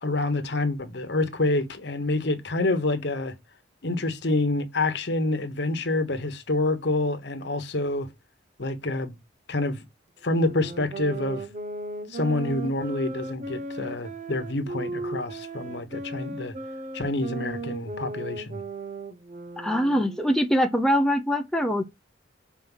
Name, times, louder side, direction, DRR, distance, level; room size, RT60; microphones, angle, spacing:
voice 1, 0.0-3.3 3.8-8.1 8.6-9.2 9.5-9.8 10.2-11.5 12.1-16.5 16.9-18.6, left 2 dB, 65° left, 1.1 m, -27 dB
sound 1, 10.3-20.3, right 2 dB, 40° right, 0.9 m, -36 dB
voice 2, 19.6-21.8, equal, 5° left, 0.6 m, -23 dB
6.0 x 4.4 x 5.5 m
head